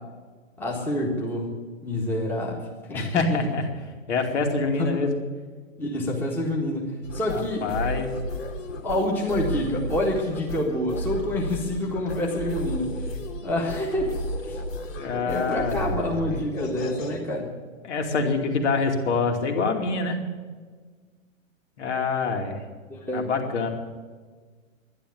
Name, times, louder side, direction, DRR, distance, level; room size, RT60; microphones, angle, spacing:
voice 1, 0.6-1.5 1.8-3.4 4.8-4.9 5.8-7.7 8.8-13.1 13.4-14.1 14.4-14.6 15.2-17.5 22.9-23.3, left 1 dB, 5° left, -3 dB, 1.6 m, -27 dB
voice 2, 2.9-3.7 4.1-5.1 7.3-8.1 15.0-16.5 17.8-20.2 21.8-22.6 23.1-23.7, left 4 dB, 60° left, 3 dB, 2.8 m, -26 dB
sound 1, 7.0-17.2, left 1 dB, 85° left, 2.6 m, -33 dB
11.5 x 11.0 x 9.4 m, 1.4 s
hypercardioid pair, 155°, 39 cm